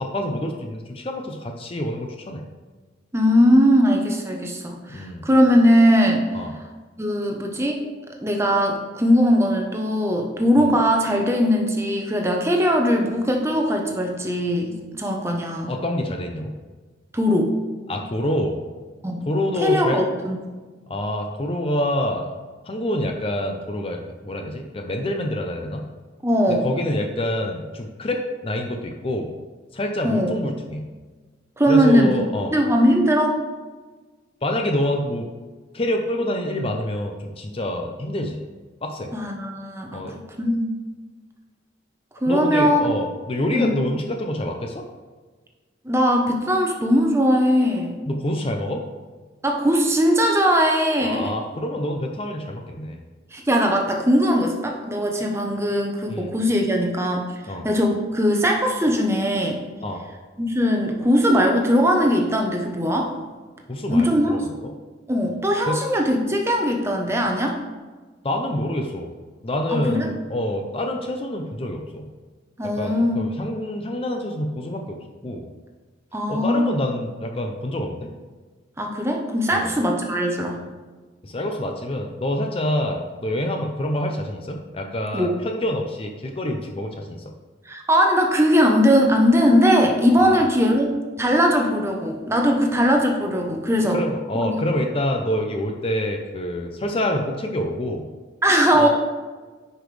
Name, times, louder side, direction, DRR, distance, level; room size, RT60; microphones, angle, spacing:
voice 1, 0.0-2.4 4.9-5.3 6.3-6.5 10.6-10.7 15.7-16.6 17.9-18.6 19.3-20.0 20.9-22.3 22.7-25.8 26.5-29.3 29.7-30.9 31.7-32.5 34.4-35.3 35.7-38.4 38.8-39.1 39.9-40.2 42.3-44.8 48.1-48.8 51.0-53.0 56.1-56.3 57.5-57.7 59.8-60.0 63.7-64.7 65.7-65.8 68.2-69.1 69.4-72.1 72.8-75.5 76.3-78.1 79.5-79.7 81.2-87.2 90.2-90.5 93.9-98.1 98.7-98.9, left 1 dB, 30° left, 3 dB, 0.5 m, -27 dB
voice 2, 3.1-6.3 7.0-7.8 8.2-15.7 17.1-17.5 19.0-19.3 19.6-20.4 26.2-26.7 30.0-30.3 31.6-32.2 32.5-33.4 39.1-40.7 42.2-42.8 43.5-43.8 45.8-48.0 49.4-51.3 53.3-57.3 57.6-59.6 60.4-63.1 63.9-64.4 65.1-67.6 69.7-70.1 72.6-73.3 76.1-76.8 78.8-80.6 85.1-85.4 87.7-90.9 91.2-94.0 94.3-94.6 98.4-98.9, equal, 15° right, 1 dB, 0.8 m, -20 dB
9.8 x 5.0 x 3.3 m, 1.3 s
head